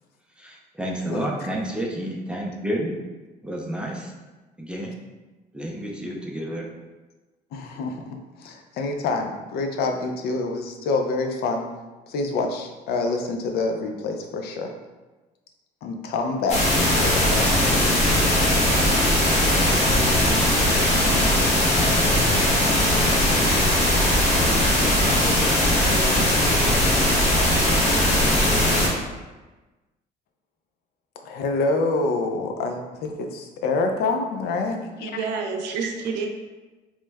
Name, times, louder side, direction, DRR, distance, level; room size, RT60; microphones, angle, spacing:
voice 1, 0.4-3.0 3.4-4.1 4.6-4.9 5.5-6.6, right 1 dB, 5° right, -2 dB, 0.5 m, -30 dB
voice 2, 7.5-11.7 12.1-14.7 15.8-17.7 31.2-35.1, left 3 dB, 70° left, 4 dB, 0.5 m, -27 dB
sound 1, 16.5-28.9, left 1 dB, 40° left, 0.9 m, -19 dB
voice 3, 35.0-36.3, right 5 dB, 90° right, 3 dB, 0.5 m, -28 dB
3.0 x 2.1 x 3.4 m, 1.2 s
cardioid pair, 110°, 17 cm